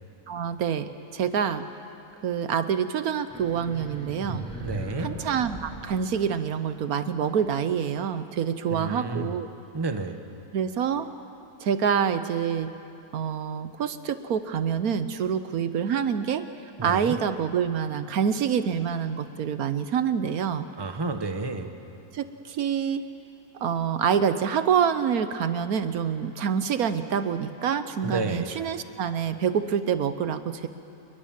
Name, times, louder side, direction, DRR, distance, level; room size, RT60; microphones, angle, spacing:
voice 1, 0.3-1.7 2.2-4.5 5.0-9.5 10.5-11.1 11.6-12.7 13.1-16.5 16.8-20.7 22.1-23.0 23.5-30.7, right 7 dB, 70° right, 11 dB, 1.3 m, -26 dB
sound 1, 3.3-6.8, right 1 dB, 5° left, 4.2 m, -38 dB
voice 2, 4.6-5.1 8.7-9.3 9.7-10.2 16.8-17.2 20.8-21.7 28.0-28.5, right 3 dB, 20° right, 7 dB, 1.0 m, -30 dB
27.5 x 21.5 x 7.5 m, 2.7 s
omnidirectional pair, 1.6 m